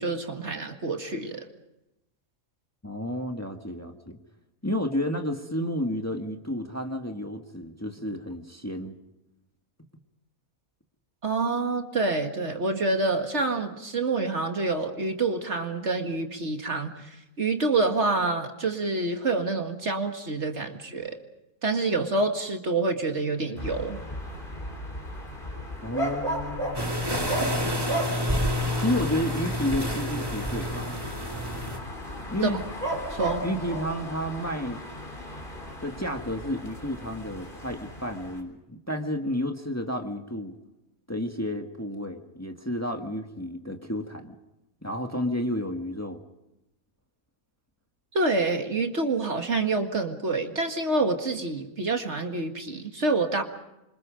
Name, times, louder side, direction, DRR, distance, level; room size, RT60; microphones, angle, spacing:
voice 1, 0.0-1.5 11.2-21.2 21.6-24.0 32.4-32.5 33.1-33.4 48.1-53.4, right 3 dB, 50° right, 5 dB, 2.2 m, -27 dB
voice 2, 2.8-4.2 4.6-9.0 25.8-26.8 28.8-31.0 32.3-32.6 33.4-34.8 35.8-40.5 41.1-44.3 44.8-46.2, equal, 10° left, 4 dB, 1.7 m, -31 dB
sound 1, 23.6-38.4, right 1 dB, 35° left, 3.9 m, -35 dB
sound 2, 26.7-31.8, left 1 dB, 15° right, 2.3 m, -29 dB
28.5 x 25.5 x 5.2 m, 0.90 s
omnidirectional pair, 1.5 m